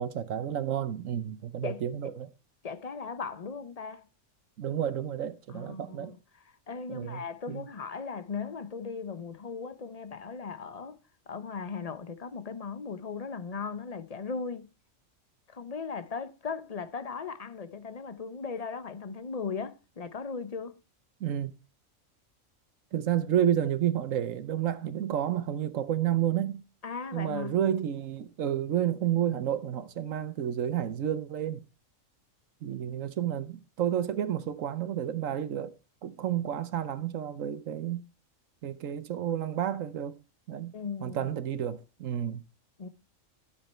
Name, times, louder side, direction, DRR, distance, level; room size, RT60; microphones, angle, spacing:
voice 1, 0.0-2.3 4.6-6.1 6.9-7.7 21.2-21.5 22.9-26.6 27.1-31.6 32.6-35.7 36.0-38.0 38.6-40.2 40.5-40.7 41.0-42.4, right 10 dB, 80° right, 1.2 m, -30 dB
voice 2, 1.6-2.1 2.6-4.1 5.5-6.2 6.7-11.0 11.3-14.7 15.5-20.8 26.8-27.5 40.7-41.3 42.8-42.9, left 5 dB, 35° left, 0.9 m, -38 dB
13.0 x 8.0 x 4.4 m
omnidirectional pair, 1.4 m